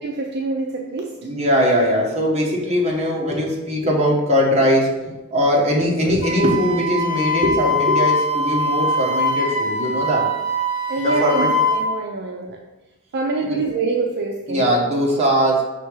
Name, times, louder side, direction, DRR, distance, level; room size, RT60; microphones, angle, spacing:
voice 1, 0.0-1.2 10.9-12.6 13.1-14.6, right 3 dB, 50° right, 2 dB, 0.5 m, -25 dB
voice 2, 1.2-10.3 11.0-11.5 13.4-13.6 14.5-15.6, equal, 30° right, -3 dB, 1.4 m, -20 dB
Wind instrument woodwind instrument, 6.2-11.9, left 1 dB, 80° left, 1.1 m, -22 dB
5.7 x 3.6 x 4.8 m, 1.1 s
head